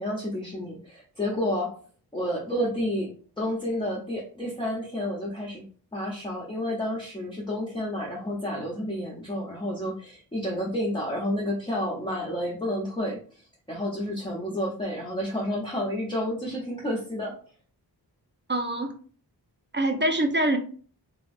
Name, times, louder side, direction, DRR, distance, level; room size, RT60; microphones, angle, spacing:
voice 1, 0.0-1.8 2.1-3.1 3.4-5.6 5.9-17.3, left 1 dB, 10° left, -4 dB, 0.6 m, -30 dB
voice 2, 18.5-18.9 19.7-20.6, right 1 dB, 30° right, 5 dB, 0.4 m, -24 dB
2.9 x 2.5 x 2.4 m, 0.43 s
wide cardioid pair, 60°, 40 cm